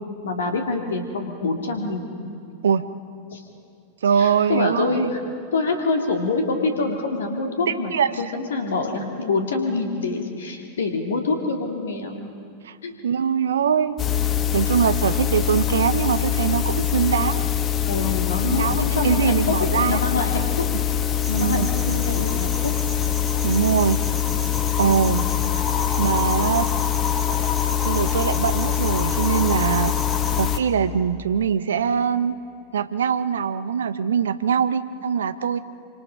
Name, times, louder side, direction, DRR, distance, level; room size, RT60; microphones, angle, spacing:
voice 1, 0.2-2.1 3.3-3.4 4.2-5.2 5.5-12.3 12.8-12.9 17.8-19.6 19.9-20.5 21.3-22.7, left 3 dB, 65° left, 3 dB, 2.2 m, -26 dB
voice 2, 4.0-5.1 7.7-8.2 12.7-12.8 13.0-14.0 14.5-17.5 18.4-20.0 21.4-21.7 23.4-24.0 24.8-25.3 26.0-26.7 27.8-30.0 30.3-32.4 32.7-35.6, right 7 dB, 65° right, 13 dB, 0.7 m, -22 dB
sound 1, 14.0-30.6, left 9 dB, 25° left, 1.0 m, -23 dB
sound 2, 21.2-30.4, right 2 dB, 15° right, 5.5 m, -38 dB
26.0 x 25.0 x 5.1 m, 2.4 s
figure-of-eight pair, 90°, 0 cm